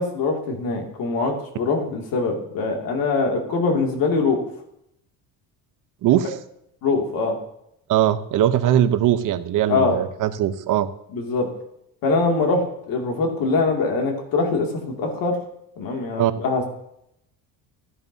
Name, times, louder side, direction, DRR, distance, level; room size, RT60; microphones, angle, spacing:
voice 1, 0.0-4.4 6.8-7.4 9.7-10.0 11.1-11.5 12.0-15.4 15.8-16.7, left 3 dB, 60° left, 1 dB, 2.5 m, -23 dB
voice 2, 6.0-6.3 7.9-10.9 16.2-16.3, right 11 dB, 55° right, 11 dB, 0.8 m, -20 dB
14.5 x 10.5 x 2.8 m, 0.76 s
cardioid pair, 140°, 39 cm